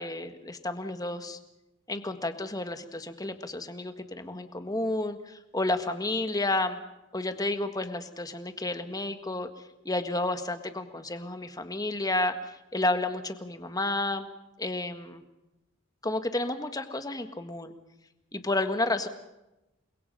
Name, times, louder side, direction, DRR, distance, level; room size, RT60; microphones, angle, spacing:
voice 1, 0.0-1.4 1.9-6.8 7.1-9.5 9.8-14.3 14.6-15.2 16.0-17.7 18.3-19.1, left 2 dB, 20° left, 8 dB, 1.6 m, -31 dB
29.5 x 22.5 x 5.6 m, 0.94 s
head